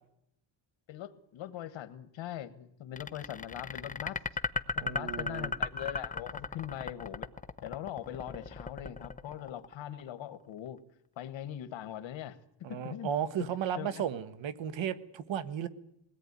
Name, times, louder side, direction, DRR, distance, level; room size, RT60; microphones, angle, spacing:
voice 1, 0.9-4.2 4.7-7.3 7.6-10.8 11.2-12.4 12.7-13.1 13.8-14.0, left 11 dB, 80° left, 12 dB, 1.5 m, -41 dB
sound 1, 3.0-10.1, left 4 dB, 15° left, 0.8 m, -36 dB
voice 2, 4.8-5.5 12.6-15.7, right 9 dB, 75° right, 13 dB, 1.5 m, -34 dB
21.5 x 17.5 x 9.6 m, 0.80 s
cardioid pair, 115°, 45 cm